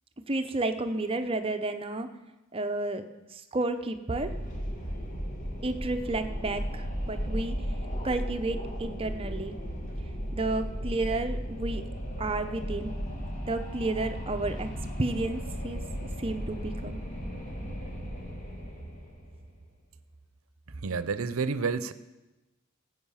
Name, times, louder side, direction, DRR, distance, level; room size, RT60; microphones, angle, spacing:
voice 1, 0.3-2.1 2.5-3.0 3.5-4.3 5.6-7.5 8.0-9.5 10.3-11.8 12.2-12.9 13.5-14.7 15.0-15.8 16.2-17.0, right 2 dB, 25° right, 8 dB, 0.7 m, -31 dB
Wind, 4.1-19.5, equal, 35° left, 2.2 m, -35 dB
sound 1, 10.9-18.2, equal, 5° left, 5.7 m, -52 dB
voice 2, 20.8-21.9, right 4 dB, 85° right, 14 dB, 0.7 m, -29 dB
16.0 x 8.0 x 5.6 m, 1.1 s
head